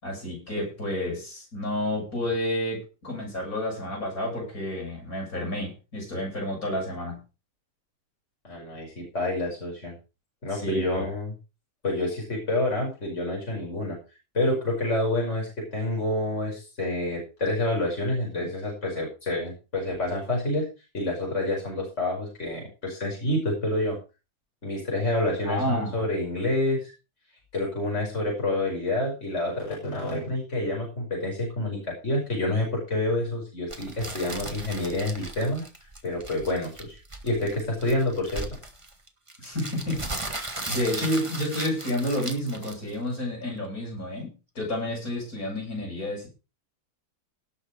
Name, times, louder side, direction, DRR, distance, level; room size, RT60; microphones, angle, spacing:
voice 1, 0.0-7.2 10.5-11.1 25.4-26.0 39.4-46.3, left 1 dB, 75° left, -1 dB, 7.9 m, -30 dB
voice 2, 8.4-9.9 10.4-11.3 11.8-14.0 14.3-20.7 20.9-24.0 24.6-26.9 27.5-35.6 36.0-37.0 37.2-38.5, left 1 dB, 50° left, -1 dB, 6.1 m, -28 dB
sound 1, 33.7-43.2, right 2 dB, 20° right, 1.8 m, -37 dB
18.5 x 6.8 x 5.0 m, 0.31 s
omnidirectional pair, 1.5 m